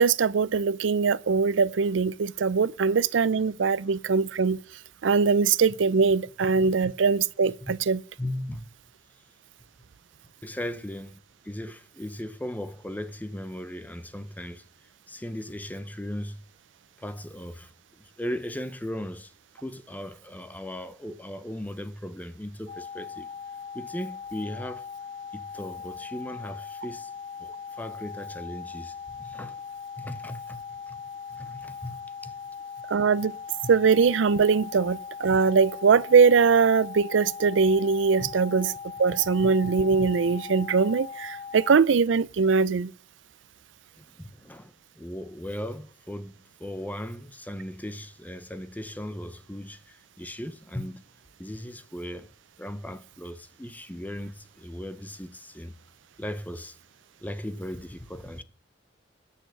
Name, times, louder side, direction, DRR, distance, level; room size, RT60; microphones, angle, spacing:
voice 1, 0.0-4.6 5.0-8.0 32.9-33.3 33.7-38.7 39.0-42.9, right 5 dB, 85° right, 0.5 m, -22 dB
voice 2, 8.2-8.7 10.4-14.6 15.1-16.4 17.0-17.7 18.0-23.3 23.7-24.8 25.3-27.1 27.4-29.6 30.0-31.0 31.3-32.4 33.6-33.7 38.2-38.3 44.0-46.3 46.6-51.0 51.4-52.3 52.6-55.7 56.2-56.8 57.2-58.4, left 1 dB, 10° left, 0.6 m, -37 dB
sound 1, 22.7-41.8, left 6 dB, 45° left, 1.2 m, -40 dB
10.0 x 6.8 x 7.6 m
head